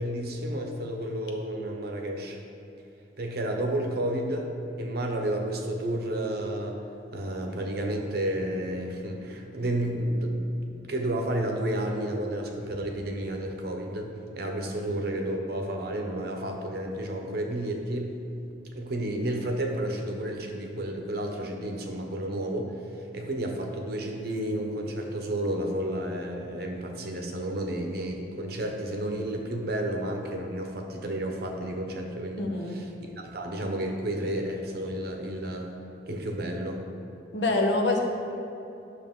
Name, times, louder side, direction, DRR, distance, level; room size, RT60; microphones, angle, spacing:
voice 1, 0.0-2.4 3.2-4.5 4.8-6.8 7.1-10.4 10.7-18.1 18.7-22.8 23.1-32.8 33.2-35.7 36.1-36.8, right 1 dB, 55° right, 2 dB, 0.9 m, -31 dB
voice 2, 32.4-32.7 37.3-38.0, left 2 dB, 70° left, 1 dB, 1.1 m, -25 dB
10.0 x 6.4 x 3.7 m, 2.8 s
head